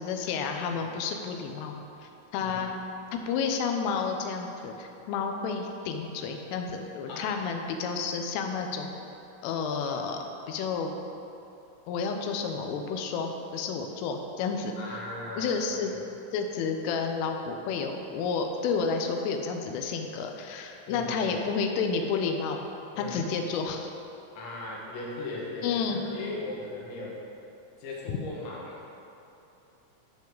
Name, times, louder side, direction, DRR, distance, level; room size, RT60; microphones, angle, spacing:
voice 1, 0.0-1.7 2.3-2.7 3.3-8.9 9.4-10.2 10.5-10.9 11.9-14.7 15.4-15.9 16.3-22.6 23.0-23.9 25.6-26.0 28.1-28.2, left 5 dB, 90° left, 3 dB, 3.3 m, -30 dB
voice 2, 14.8-15.9 20.9-21.4 23.0-23.3 24.4-27.2 27.8-28.8, left 2 dB, 70° left, -4 dB, 3.7 m, -38 dB
15.5 x 5.4 x 3.9 m, 2.9 s
omnidirectional pair, 5.6 m